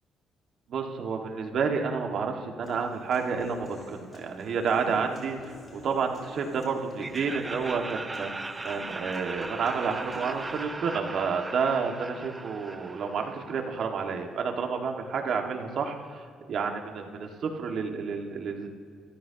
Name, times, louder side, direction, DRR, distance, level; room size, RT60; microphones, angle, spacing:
voice 1, 0.7-18.7, right 5 dB, 65° right, 3 dB, 1.8 m, -30 dB
Human voice / Acoustic guitar, 2.6-10.6, left 1 dB, 40° left, 4.5 m, -48 dB
Laughter, 7.0-13.9, right 3 dB, 20° right, 0.8 m, -39 dB
23.5 x 14.0 x 2.9 m, 2.1 s
cardioid pair, 90°, 0 cm